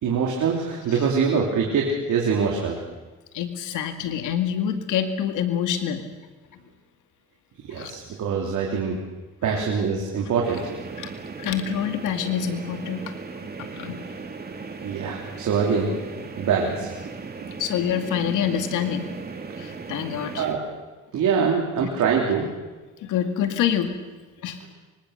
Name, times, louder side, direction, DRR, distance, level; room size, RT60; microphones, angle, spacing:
voice 1, 0.0-2.8 7.7-9.0 9.4-10.7 14.8-15.9 16.4-16.9 20.4-20.6 21.1-22.5, right 6 dB, 75° right, -1 dB, 3.5 m, -24 dB
voice 2, 3.3-6.1 6.5-6.6 7.7-7.9 9.5-9.6 10.1-10.3 11.0-11.1 11.4-13.1 13.6-14.2 17.6-19.1 19.6-20.5 21.8-21.9 23.0-23.9 24.4-24.6, left 9 dB, 90° left, 7 dB, 2.3 m, -27 dB
sound 1, 10.4-20.6, right 4 dB, 30° right, 3.0 m, -37 dB
25.5 x 25.0 x 6.7 m, 1.2 s
cardioid pair, 90°, 30 cm